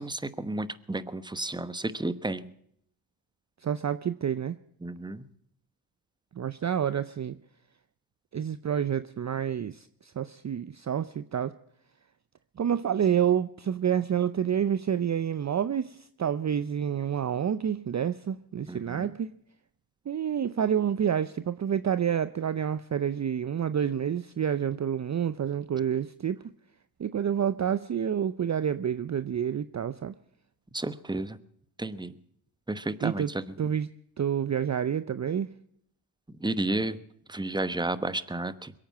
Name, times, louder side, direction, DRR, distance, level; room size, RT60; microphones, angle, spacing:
voice 1, 0.0-2.5 4.8-5.3 18.7-19.1 30.7-31.4 31.8-32.2 32.7-33.4 36.4-37.0 37.3-38.7, right 2 dB, 10° right, 14 dB, 1.0 m, -32 dB
voice 2, 3.6-4.6 6.4-7.4 8.3-11.5 12.6-19.3 20.1-26.4 27.0-30.1 33.0-33.3 33.6-33.9 34.2-35.5, right 8 dB, 35° right, 14 dB, 0.6 m, -28 dB
22.0 x 8.8 x 7.5 m, 0.69 s
supercardioid pair, 50°, 48 cm